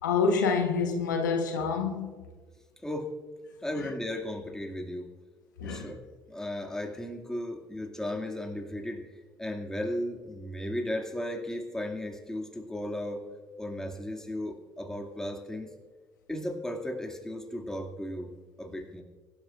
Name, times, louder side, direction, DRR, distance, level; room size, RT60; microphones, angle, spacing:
voice 1, 0.0-2.1 3.8-3.9 5.6-5.9, left 5 dB, 85° left, 1.2 m, -27 dB
voice 2, 2.8-3.1 3.6-5.1 5.6-6.0 6.3-9.1 9.4-13.3 13.6-15.7 16.3-19.0, left 1 dB, 5° left, 2.3 m, -35 dB
24.0 x 12.5 x 2.5 m
hypercardioid pair, 60°, 10 cm